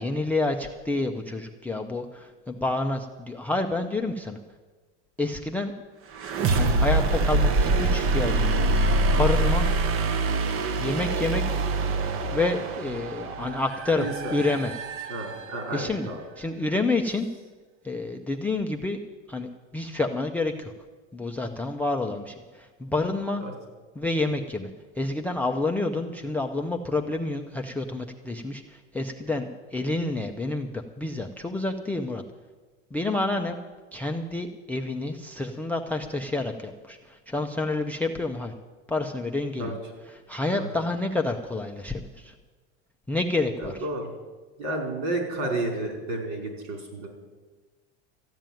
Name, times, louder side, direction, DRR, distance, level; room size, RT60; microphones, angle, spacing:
voice 1, 0.0-4.4 5.2-5.7 6.5-8.7 9.1-9.7 10.8-11.4 12.3-14.7 15.7-16.1 16.4-17.3 17.8-19.0 19.3-20.7 21.1-23.4 24.0-24.7 25.0-32.2 32.9-33.6 33.9-38.5 38.9-39.7 40.3-42.3 43.1-43.8, left 2 dB, 5° left, 7 dB, 0.4 m, -28 dB
sound 1, 6.1-15.9, right 2 dB, 35° right, 0.7 m, -25 dB
voice 2, 14.0-14.3 15.1-16.2 23.4-23.5 39.6-39.7 40.6-40.7 43.6-44.1 44.6-47.1, right 2 dB, 65° right, 3 dB, 5.0 m, -31 dB
14.0 x 9.0 x 9.0 m, 1.3 s
supercardioid pair, 150°, 37 cm